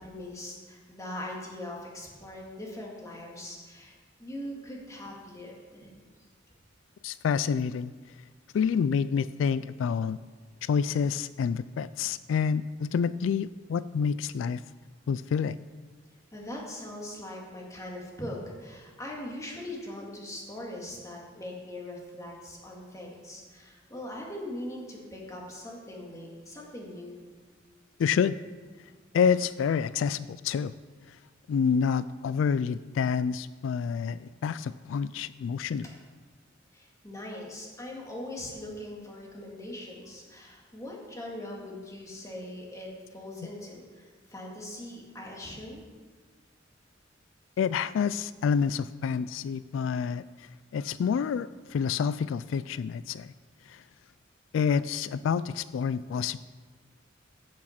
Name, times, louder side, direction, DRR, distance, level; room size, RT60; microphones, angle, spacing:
voice 1, 0.0-5.9 16.3-27.2 35.8-35.9 36.7-43.8 44.3-45.8, left 1 dB, 15° left, -2 dB, 2.2 m, -41 dB
voice 2, 7.0-7.9 8.5-10.2 10.6-14.6 15.1-15.6 28.0-28.4 29.1-30.7 31.5-35.9 47.6-50.2 50.7-53.3 53.7-53.8 54.5-56.4, left 6 dB, 85° left, 17 dB, 0.3 m, -28 dB
15.0 x 6.3 x 5.8 m, 1.5 s
head